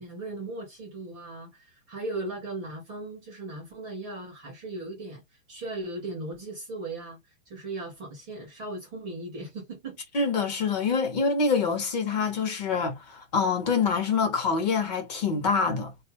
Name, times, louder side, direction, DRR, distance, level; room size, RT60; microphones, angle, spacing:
voice 1, 0.0-10.0 10.8-10.9, right 2 dB, 15° right, 0.5 m, -38 dB
voice 2, 10.1-15.9, left 5 dB, 30° left, 0.8 m, -26 dB
3.9 x 2.4 x 2.9 m
hypercardioid pair, 160°, 40 cm